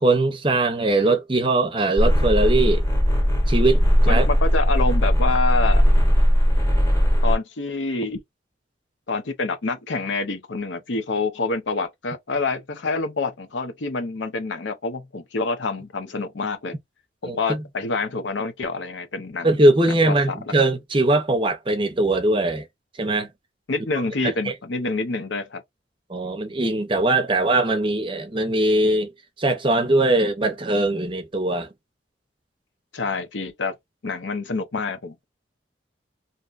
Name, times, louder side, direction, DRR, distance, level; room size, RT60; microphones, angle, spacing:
voice 1, 0.0-2.8 3.5-4.3 17.2-17.6 19.4-22.7 23.0-23.3 24.2-24.5 26.1-29.1 29.4-31.7, right 2 dB, 30° right, 0.6 m, -21 dB
sound 1, 2.0-7.4, equal, 15° left, 1.0 m, -18 dB
voice 2, 4.1-5.8 7.2-8.2 9.1-16.7 17.2-19.5 19.9-20.1 23.7-25.6 32.9-33.7 34.0-35.2, left 3 dB, 90° left, 0.7 m, -27 dB
2.7 x 2.2 x 2.4 m
head